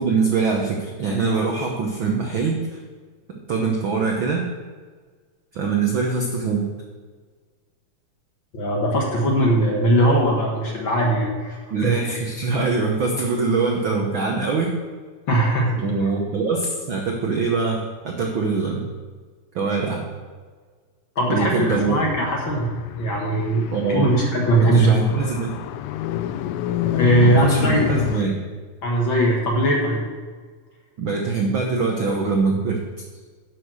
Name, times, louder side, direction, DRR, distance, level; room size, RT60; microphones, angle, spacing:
voice 1, 0.0-2.8 3.3-4.5 5.5-6.7 11.7-14.7 15.8-18.9 19.5-20.1 21.3-22.0 23.7-24.1 24.6-25.6 27.2-28.4 31.0-32.8, right 4 dB, 65° right, 1 dB, 1.2 m, -23 dB
voice 2, 8.5-11.9 15.3-15.7 21.2-24.9 26.8-27.9 28.8-30.1, right 1 dB, 45° left, -1 dB, 2.0 m, -20 dB
Car, 21.4-28.2, left 12 dB, 85° left, 1.5 m, -29 dB
10.5 x 6.3 x 6.4 m, 1.5 s
omnidirectional pair, 3.5 m